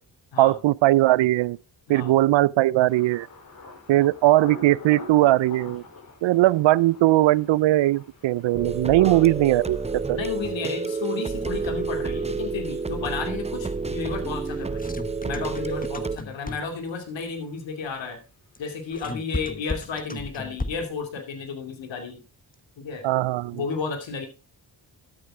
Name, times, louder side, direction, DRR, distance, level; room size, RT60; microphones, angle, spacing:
voice 1, 0.4-1.6 1.9-3.3 3.9-5.8 6.2-9.8 10.1-10.2 23.0-23.6, right 16 dB, 80° right, 0.6 m, -19 dB
Thunder, 2.8-18.6 18.8-19.5 19.9-20.1, left 3 dB, 50° left, 5.4 m, -48 dB
sound 1, 8.5-16.2, right 4 dB, 15° right, 0.7 m, -30 dB
voice 2, 10.1-14.9 15.2-18.2 18.6-22.2 22.8-23.1 23.5-24.3, left 5 dB, 80° left, 2.6 m, -32 dB
sound 2, 14.5-16.9 18.6-21.0, left 3 dB, 20° left, 1.2 m, -35 dB
12.5 x 8.8 x 3.6 m
cardioid pair, 55°, 45 cm